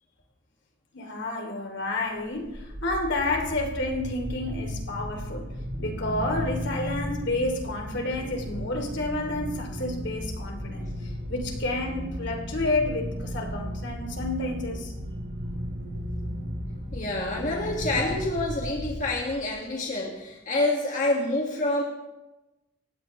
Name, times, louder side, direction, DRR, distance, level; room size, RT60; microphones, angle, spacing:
voice 1, 0.9-5.5 5.8-14.9 18.0-18.1, left 2 dB, 65° left, 2 dB, 2.9 m, -30 dB
sound 1, 2.2-19.6, equal, 60° right, 3.7 m, -35 dB
voice 2, 16.9-21.8, left 2 dB, 40° left, -1 dB, 1.9 m, -27 dB
28.5 x 16.0 x 3.2 m, 1.0 s
head